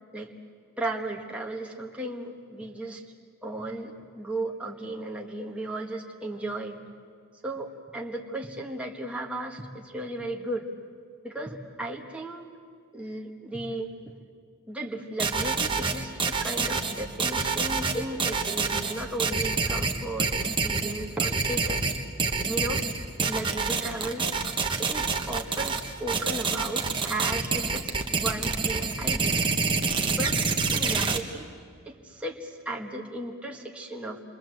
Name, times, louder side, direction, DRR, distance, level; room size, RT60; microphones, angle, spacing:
voice 1, 0.8-3.0 3.4-6.8 7.4-10.7 11.2-12.5 12.9-13.9 14.7-22.0 22.5-22.8 23.3-24.3 24.8-29.4 30.1-30.4 30.7-31.5 31.9-34.2, right 1 dB, 5° right, -1 dB, 1.8 m, -35 dB
sound 1, 15.2-31.2, right 4 dB, 25° right, 1.4 m, -27 dB
28.0 x 23.0 x 7.9 m, 2.2 s
head